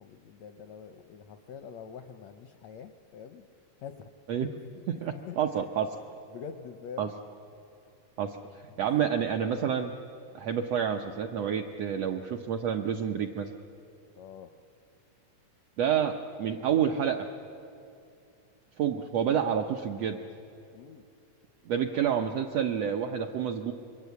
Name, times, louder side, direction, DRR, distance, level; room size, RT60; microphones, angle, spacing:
voice 1, 0.0-4.1 4.4-5.7 6.3-7.1 8.4-8.9 14.2-14.5 20.7-21.0, left 7 dB, 75° left, 7 dB, 1.5 m, -46 dB
voice 2, 4.9-5.9 7.0-7.1 8.2-8.4 8.8-9.9 10.3-13.5 15.8-17.3 18.8-20.2 21.7-23.7, right 8 dB, 75° right, 4 dB, 1.5 m, -28 dB
27.5 x 22.5 x 8.3 m, 2.6 s
omnidirectional pair, 3.9 m